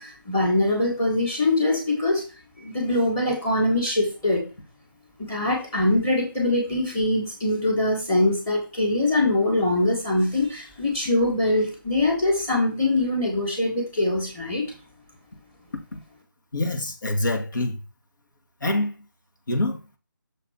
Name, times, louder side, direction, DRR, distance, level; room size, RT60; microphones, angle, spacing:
voice 1, 0.0-2.2 2.6-4.4 5.2-14.7, left 2 dB, 10° left, 1.7 m, -23 dB
voice 2, 16.5-17.8 18.6-18.9 19.5-19.8, left 1 dB, 70° left, 2.3 m, -25 dB
6.7 x 4.3 x 5.7 m
figure-of-eight pair, 165°, 11 cm